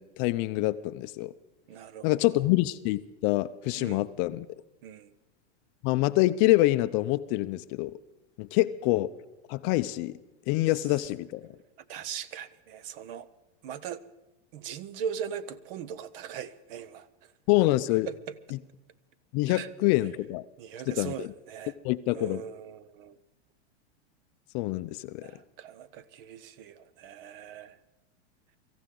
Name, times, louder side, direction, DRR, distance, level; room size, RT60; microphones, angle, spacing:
voice 1, 0.0-1.3 2.0-4.5 5.8-7.9 8.4-9.1 9.5-10.2 10.5-11.4 17.5-18.1 19.3-20.4 20.9-21.3 21.8-22.4 24.5-25.3, left 18 dB, 35° left, 12 dB, 0.5 m, -26 dB
voice 2, 1.7-2.4 3.8-4.0 4.8-5.1 11.9-13.3 13.6-14.0 14.5-17.1 18.0-18.4 19.5-19.7 20.6-21.7 22.1-23.2 25.2-27.8, right 8 dB, 55° right, 18 dB, 0.9 m, -40 dB
24.5 x 14.5 x 3.8 m, 1.0 s
supercardioid pair, 140°, 33 cm